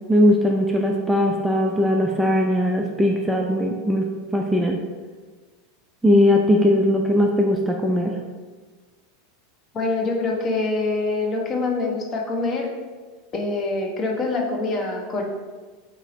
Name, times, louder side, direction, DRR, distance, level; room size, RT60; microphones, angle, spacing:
voice 1, 0.1-4.1 4.3-4.8 6.0-8.1, left 1 dB, 5° right, 0 dB, 0.3 m, -19 dB
voice 2, 9.7-12.7 13.3-15.2, left 3 dB, 30° left, 0 dB, 0.6 m, -25 dB
2.9 x 2.6 x 4.0 m, 1.4 s
figure-of-eight pair, 85°, 0 cm